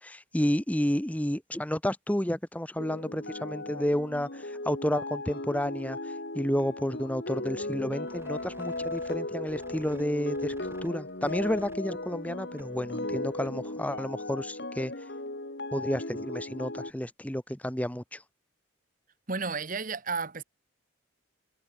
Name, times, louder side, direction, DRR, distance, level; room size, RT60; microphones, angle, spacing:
voice 1, 0.0-10.6 10.8-14.9 15.7-18.2, equal, 5° left, 0.9 m, -31 dB
sound 1, 2.8-16.9, left 2 dB, 55° left, 2.4 m, -37 dB
sound 2, 8.1-13.8, right 1 dB, 10° right, 5.1 m, -56 dB
voice 2, 19.3-20.4, right 4 dB, 40° right, 1.5 m, -32 dB
head